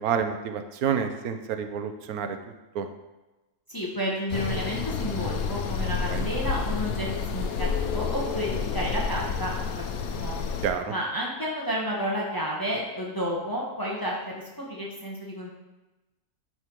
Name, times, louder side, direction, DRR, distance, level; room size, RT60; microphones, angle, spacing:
voice 1, 0.0-2.3 2.8-2.9 6.1-6.2 10.6-10.8, right 7 dB, 70° right, 7 dB, 1.1 m, -28 dB
voice 2, 3.7-7.1 7.3-10.3 10.9-15.5, equal, 15° left, -4 dB, 1.1 m, -31 dB
sound 1, 4.3-10.7, left 6 dB, 70° left, 1.1 m, -29 dB
9.7 x 3.6 x 4.5 m, 1.1 s
omnidirectional pair, 1.7 m